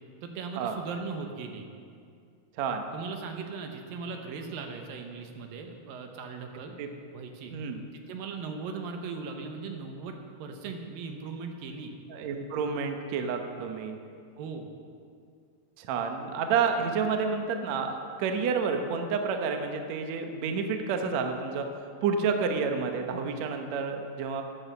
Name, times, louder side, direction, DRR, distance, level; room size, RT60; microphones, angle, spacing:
voice 1, 0.2-1.7 2.9-6.8 7.1-7.5 7.9-11.9 14.4-14.7, right 5 dB, 80° right, 4 dB, 2.8 m, -38 dB
voice 2, 2.6-2.9 6.8-6.9 7.5-7.8 12.1-14.0 15.8-21.7 22.0-24.4, right 5 dB, 65° right, 5 dB, 1.9 m, -29 dB
13.5 x 9.6 x 6.8 m, 2.3 s
omnidirectional pair, 4.0 m